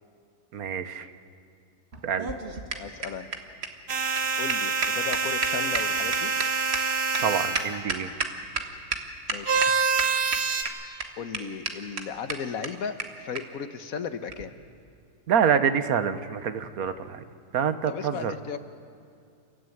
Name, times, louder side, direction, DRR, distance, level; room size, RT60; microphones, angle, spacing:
voice 1, 0.5-1.1 2.0-2.3 7.2-8.1 15.3-17.2 17.5-18.3, right 7 dB, 65° right, 11 dB, 1.4 m, -26 dB
sound 1, 1.9-8.6 8.9-9.0 9.3-9.7 10.0-10.7 11.0-11.1 11.3-11.4 11.6-11.7 12.0-12.1 12.3-12.4 12.6-12.7 13.0-13.1 13.3-13.4 14.3-14.4, right 4 dB, 40° right, 1.7 m, -30 dB
voice 2, 2.8-3.3 4.4-6.3 9.3-9.8 11.2-14.5 17.9-18.6, left 6 dB, 60° left, 10 dB, 1.5 m, -35 dB
sound 2, 3.9-7.7 9.5-10.6, right 5 dB, 80° right, 2.2 m, -26 dB
29.5 x 14.0 x 9.2 m, 2.4 s
omnidirectional pair, 1.7 m